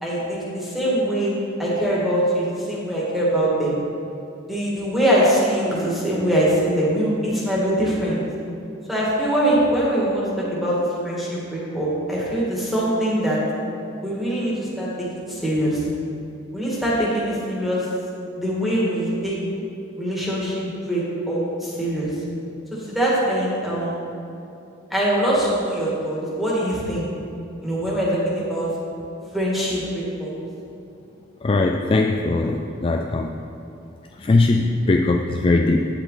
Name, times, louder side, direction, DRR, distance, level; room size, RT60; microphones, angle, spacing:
voice 1, 0.0-3.7 4.5-8.2 8.9-13.4 14.0-14.9 15.3-15.8 16.5-17.9 18.4-19.4 20.0-22.1 22.7-24.0 24.9-27.1 27.6-28.7 29.3-30.3, right 1 dB, ahead, -7 dB, 2.0 m, -23 dB
voice 2, 31.4-33.4 34.2-35.9, left 2 dB, 25° left, 3 dB, 0.3 m, -20 dB
9.0 x 7.9 x 4.0 m, 2.8 s
head